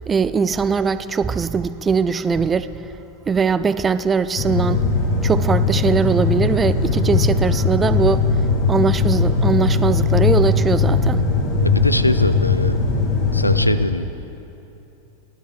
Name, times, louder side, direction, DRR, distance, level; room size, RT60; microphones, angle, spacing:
voice 1, 0.0-2.7 3.3-4.8 5.2-8.3 8.7-11.2, right 5 dB, 20° right, 14 dB, 0.3 m, -20 dB
sound 1, 4.4-13.7, left 4 dB, 45° left, 1.6 m, -19 dB
voice 2, 11.6-12.8 13.3-14.2, left 1 dB, 85° left, 13 dB, 0.4 m, -22 dB
15.5 x 11.5 x 3.6 m, 2.9 s
figure-of-eight pair, 90°, 0 cm